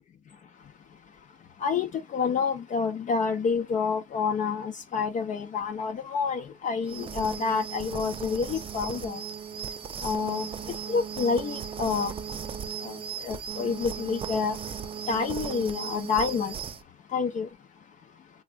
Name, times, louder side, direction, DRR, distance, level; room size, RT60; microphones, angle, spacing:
voice 1, 1.6-9.2 10.0-10.5 10.9-12.1 12.8-13.0 13.2-14.6 15.1-16.5 17.1-17.5, left 5 dB, 50° left, 0.7 m, -28 dB
sound 1, 6.9-16.8, right 7 dB, 30° right, 0.5 m, -37 dB
3.4 x 3.1 x 2.2 m
cardioid pair, 110°, 17 cm